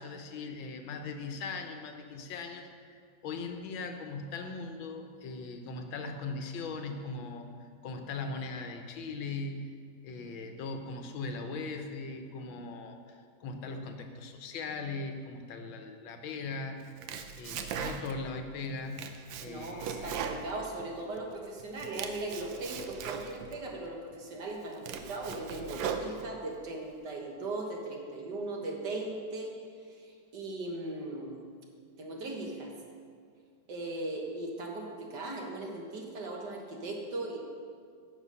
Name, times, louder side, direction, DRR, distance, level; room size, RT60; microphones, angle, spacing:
voice 1, 0.0-3.0 3.2-7.5 7.8-9.7 10.0-16.8 17.4-19.1 19.4-20.2, left 3 dB, 85° left, 6 dB, 1.7 m, -39 dB
Domestic sounds home sounds, 16.8-18.3 18.7-21.2 21.6-23.6 24.1-24.2 24.6-26.6, right 7 dB, 80° right, 1.4 m, -39 dB
voice 2, 19.5-29.5 29.9-31.3 32.0-32.7 33.7-37.4, right 2 dB, 60° right, 0 dB, 1.9 m, -38 dB
11.5 x 7.5 x 5.4 m, 2.1 s
omnidirectional pair, 2.1 m